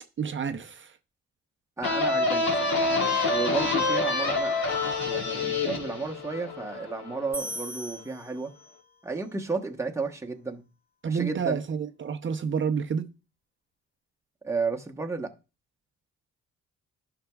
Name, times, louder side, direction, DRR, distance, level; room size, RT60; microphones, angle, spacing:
voice 1, 0.2-0.9 11.0-13.1, right 6 dB, 40° right, 0.7 m, -29 dB
sound 1, 1.8-7.3, left 3 dB, 65° left, 2.4 m, -27 dB
voice 2, 1.8-2.7 3.3-4.6 5.0-8.5 9.0-10.6 11.1-11.6 14.4-15.3, right 4 dB, 10° right, 1.1 m, -32 dB
sound 2, 7.3-9.0, equal, 35° left, 3.2 m, -39 dB
11.5 x 5.9 x 2.3 m
cardioid pair, 90°, 30 cm